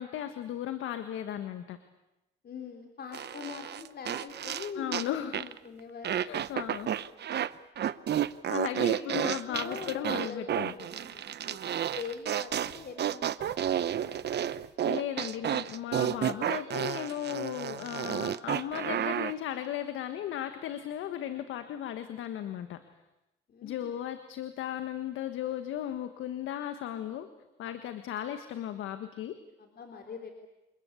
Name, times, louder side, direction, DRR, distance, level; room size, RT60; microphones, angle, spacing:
voice 1, 0.0-1.8 4.7-5.4 6.2-6.9 8.5-10.7 14.8-22.8 23.6-27.3 27.6-29.4, left 11 dB, 85° left, 9 dB, 1.6 m, -36 dB
voice 2, 2.4-6.2 9.0-11.6 11.9-14.7 23.5-24.0 29.6-30.3, left 5 dB, 55° left, 3 dB, 3.9 m, -43 dB
sound 1, 3.1-5.1 5.3-5.6 6.0-7.5 7.8-19.3, right 10 dB, 60° right, 0.9 m, -31 dB
28.0 x 21.0 x 8.4 m, 0.96 s
cardioid pair, 90°, 20 cm